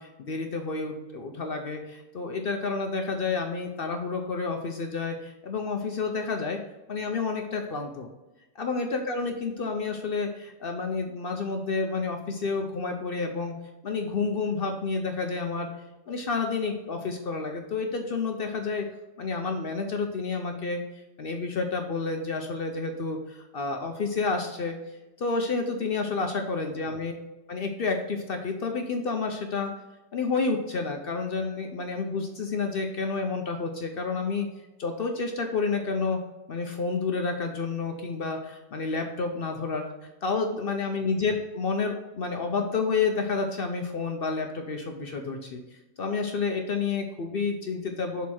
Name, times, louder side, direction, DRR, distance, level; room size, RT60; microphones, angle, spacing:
voice 1, 0.0-6.6 6.9-8.1 8.6-13.5 13.8-15.7 16.1-18.9 19.2-20.8 21.2-24.7 25.2-27.1 27.5-29.7 30.1-34.5 34.8-36.2 36.5-39.8 40.2-45.6 46.0-48.3, left 4 dB, 55° left, 4 dB, 0.7 m, -30 dB
6.5 x 4.1 x 4.3 m, 1.0 s
omnidirectional pair, 1.5 m